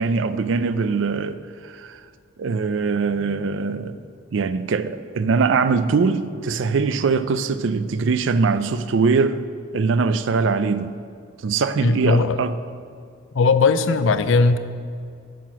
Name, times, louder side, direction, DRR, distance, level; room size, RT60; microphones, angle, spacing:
voice 1, 0.0-1.4 1.7-2.0 2.4-4.0 4.3-9.4 9.7-10.9 11.4-12.5, right 4 dB, 65° right, 0.4 m, -22 dB
voice 2, 11.8-12.4 13.3-14.6, left 4 dB, 70° left, 0.5 m, -18 dB
9.2 x 5.9 x 6.0 m
head